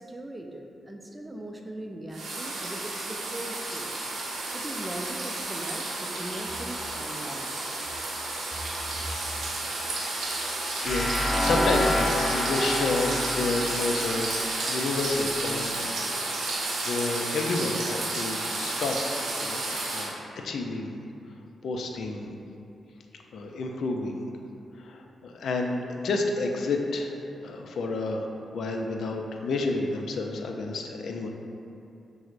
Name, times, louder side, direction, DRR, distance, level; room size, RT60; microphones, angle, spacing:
voice 1, 0.0-3.9 4.5-7.5, right 1 dB, 20° right, 2 dB, 0.4 m, -39 dB
sound 1, 2.1-20.1, right 2 dB, 85° right, 0.6 m, -32 dB
voice 2, 10.2-14.3 14.7-16.1 16.5-16.6 16.9-19.0 19.4-19.6 19.9-20.1 20.4-21.0 21.6-22.3 23.3-24.3 24.8-27.1 27.4-28.3 28.5-31.3, left 3 dB, 75° left, 2 dB, 0.3 m, -30 dB
sound 2, 10.8-15.7, left 1 dB, 30° left, 0.7 m, -29 dB
5.9 x 2.0 x 2.5 m, 2.7 s
cardioid pair, 70°, 0 cm